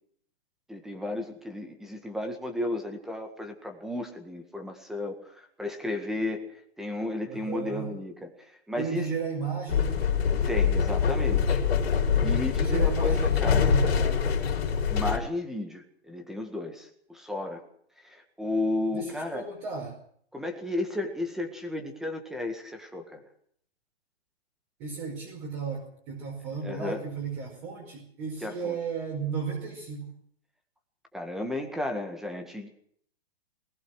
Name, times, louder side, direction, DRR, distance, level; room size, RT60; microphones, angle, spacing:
voice 1, 0.7-6.4 6.8-9.1 10.5-11.6 12.2-13.8 14.9-17.6 18.0-19.5 20.3-23.2 26.6-27.1 28.4-28.8 31.1-32.7, left 2 dB, ahead, 5 dB, 1.8 m, -33 dB
voice 2, 7.3-8.0 8.8-10.0 12.6-14.4 18.9-19.9 24.8-30.1, right 5 dB, 25° right, -1 dB, 5.0 m, -34 dB
sound 1, 9.7-15.2, left 7 dB, 65° left, 4.1 m, -24 dB
21.0 x 19.5 x 6.4 m, 0.63 s
hypercardioid pair, 170°, 32 cm